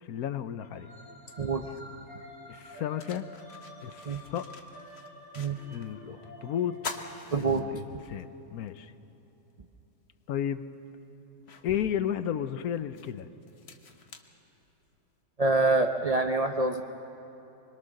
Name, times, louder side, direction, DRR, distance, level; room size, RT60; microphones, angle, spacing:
voice 1, 0.0-0.9 2.5-3.3 3.8-4.5 5.7-6.8 7.4-8.9 10.3-10.6 11.6-13.3, left 9 dB, 70° left, 12 dB, 1.1 m, -33 dB
sound 1, 0.6-7.2, equal, 30° right, 7.2 m, -49 dB
sound 2, 1.9-2.0 2.5-5.9 6.2-6.3 6.7-8.2 8.7-8.8 10.2-10.3 10.9-15.1, left 4 dB, 45° left, 1.2 m, -45 dB
voice 2, 7.3-7.6 15.4-16.8, right 3 dB, 55° right, 5 dB, 0.4 m, -25 dB
25.5 x 22.0 x 6.4 m, 3.0 s
omnidirectional pair, 1.8 m